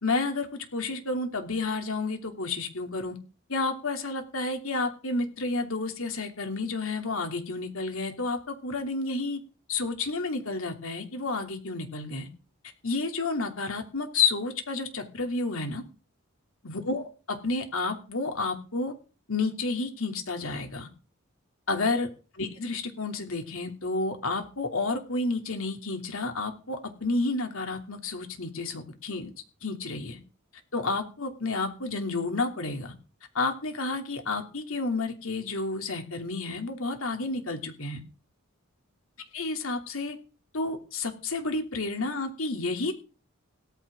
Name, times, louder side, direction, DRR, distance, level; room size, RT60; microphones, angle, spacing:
voice 1, 0.0-3.2 3.5-9.4 9.7-12.3 12.8-15.8 16.6-18.9 19.3-20.9 21.7-29.3 29.6-30.2 30.7-32.9 33.3-38.0 39.3-40.2 40.5-42.9, left 3 dB, 70° left, 5 dB, 2.9 m, -30 dB
17.0 x 14.5 x 3.7 m, 0.35 s
head